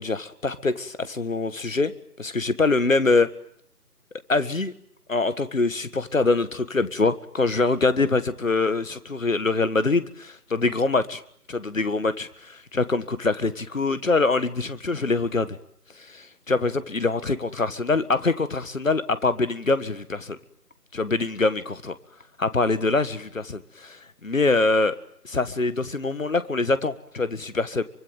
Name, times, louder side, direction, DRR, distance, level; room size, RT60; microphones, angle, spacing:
voice 1, 0.0-3.3 4.3-4.7 5.1-11.2 11.5-15.6 16.1-20.4 20.9-21.9 22.4-25.0 25.2-27.8, left 3 dB, 55° left, 14 dB, 1.7 m, -24 dB
24.5 x 24.5 x 9.0 m, 0.65 s
figure-of-eight pair, 165°, 47 cm